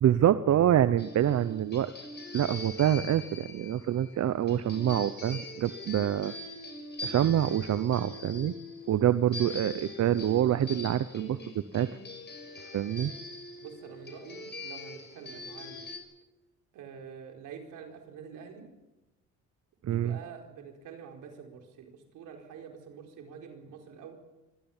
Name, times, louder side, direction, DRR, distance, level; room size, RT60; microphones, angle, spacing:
voice 1, 0.0-1.9 2.3-6.3 7.0-8.5 8.9-11.9 12.7-13.1 19.8-20.2, right 11 dB, 60° right, 14 dB, 0.8 m, -26 dB
sound 1, 1.0-16.0, left 2 dB, 35° left, 6.2 m, -43 dB
voice 2, 13.6-15.8 16.7-18.7 19.9-24.1, right 6 dB, 90° right, 3 dB, 4.6 m, -46 dB
24.5 x 17.5 x 7.3 m, 1.0 s
cardioid pair, 90°, 30 cm